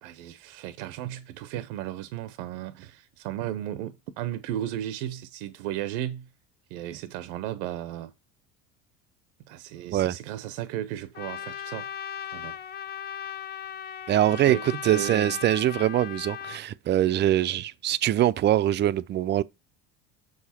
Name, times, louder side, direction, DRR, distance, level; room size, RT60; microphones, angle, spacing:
voice 1, 0.0-6.3 6.7-8.1 9.5-11.9 12.3-12.6 14.4-15.4 17.5-17.6, right 12 dB, 80° right, 0.7 m, -35 dB
Trumpet, 11.1-16.6, left 9 dB, 30° left, 0.5 m, -37 dB
voice 2, 14.1-14.6 14.8-19.4, right 12 dB, 35° right, 0.4 m, -23 dB
6.5 x 4.9 x 4.2 m
supercardioid pair, 105°, 33 cm